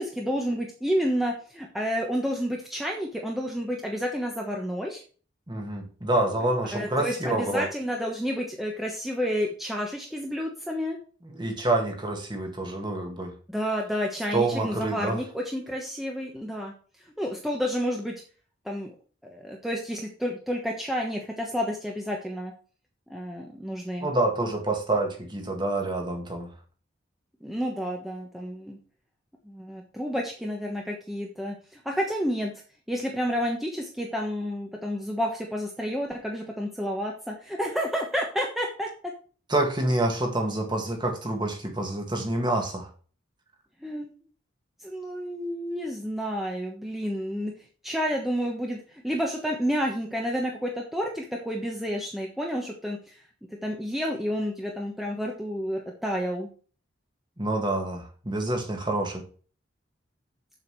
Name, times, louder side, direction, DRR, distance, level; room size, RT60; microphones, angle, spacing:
voice 1, 0.0-5.0 6.7-11.0 13.5-16.7 17.2-18.1 18.6-18.9 19.2-22.5 23.1-24.1 27.4-28.8 29.4-32.5 32.9-38.9 43.8-44.1 44.8-47.5 47.8-53.2 53.6-56.5, equal, ahead, 1.1 m, -30 dB
voice 2, 5.5-7.7 11.2-13.3 14.3-15.2 24.0-26.5 39.5-42.9 57.4-59.2, right 2 dB, 25° right, 1.9 m, -27 dB
7.5 x 7.2 x 4.6 m
head